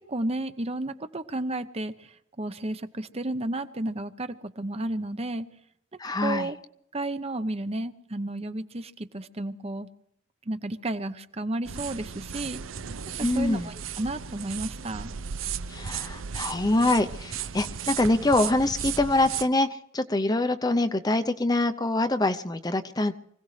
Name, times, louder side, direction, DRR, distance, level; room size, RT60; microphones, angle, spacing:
voice 1, 0.0-5.5 6.2-6.6 6.9-9.9 10.5-12.6 13.2-15.1, right 1 dB, 30° right, 11 dB, 0.8 m, -32 dB
voice 2, 6.0-6.5 13.2-13.7 15.7-23.1, left 2 dB, 20° left, 9 dB, 0.7 m, -25 dB
sound 1, 11.6-19.5, right 7 dB, 85° right, 0.7 m, -35 dB
25.0 x 17.0 x 3.3 m, 0.72 s
head